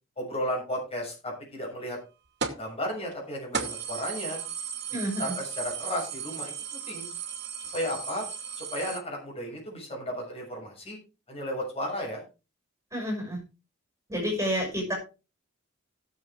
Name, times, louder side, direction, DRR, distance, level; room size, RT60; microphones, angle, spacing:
voice 1, 0.2-2.0 2.6-4.4 5.2-7.1 7.7-8.2 8.6-11.0 11.3-12.2, equal, 30° left, 0 dB, 6.8 m, -34 dB
sound 1, 2.4-2.7 3.1-3.2 3.5-9.0, right 6 dB, 55° right, 2.3 m, -35 dB
voice 2, 4.9-5.3 12.9-13.4 14.1-14.9, equal, 15° right, 0 dB, 6.1 m, -29 dB
18.0 x 7.4 x 3.6 m, 0.31 s
head